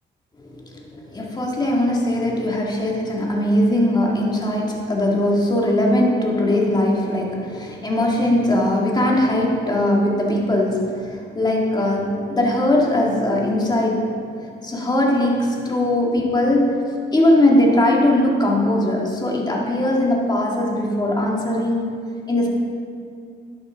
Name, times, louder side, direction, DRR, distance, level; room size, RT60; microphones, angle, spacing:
voice 1, 0.4-14.3 14.6-16.8 17.1-21.9 22.3-22.5, left 1 dB, 20° left, -1 dB, 2.0 m, -20 dB
11.5 x 8.4 x 3.6 m, 2.3 s
cardioid pair, 90°, 20 cm